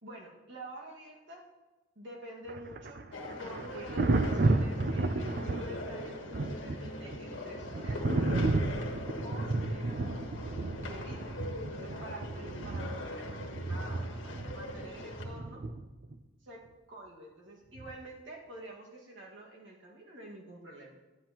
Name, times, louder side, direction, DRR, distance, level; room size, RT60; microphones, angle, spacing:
voice 1, 0.0-1.4 1.9-3.0 3.4-8.4 9.2-9.9 10.8-15.6 16.4-21.0, right 1 dB, 75° right, -2 dB, 1.8 m, -48 dB
Thunder, 2.5-16.1 17.8-18.0, right 2 dB, 50° right, 0.4 m, -33 dB
sound 1, 3.1-15.2, left 2 dB, 85° left, 1.4 m, -42 dB
11.5 x 9.3 x 3.0 m, 1.1 s
head